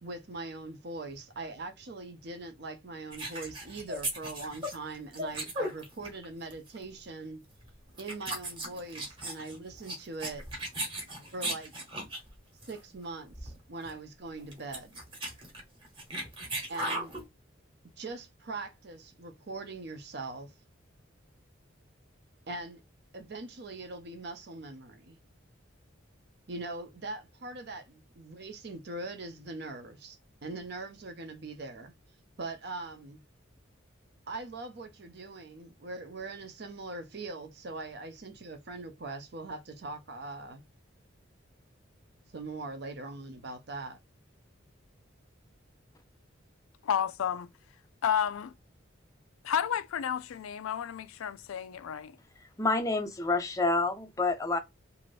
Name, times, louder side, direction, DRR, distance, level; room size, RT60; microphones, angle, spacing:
voice 1, 0.0-7.4 8.0-10.4 11.3-11.7 12.7-14.9 16.7-17.1 18.0-20.5 22.5-22.8 23.1-25.2 26.5-31.9 32.4-33.2 34.3-40.6 42.3-44.0, right 3 dB, 50° right, 0.6 m, -41 dB
sound 1, 3.1-6.2 6.5-6.8 7.5-7.7 8.0-12.3 12.6-12.8 13.0-13.1 13.3-13.6 13.9-14.0 14.4-17.2, right 1 dB, 25° right, 0.9 m, -37 dB
voice 2, 46.8-47.5 48.0-48.5 49.4-52.2, left 8 dB, 90° left, 0.4 m, -31 dB
voice 3, 52.6-54.6, left 3 dB, 15° left, 0.4 m, -28 dB
2.7 x 2.5 x 3.1 m
head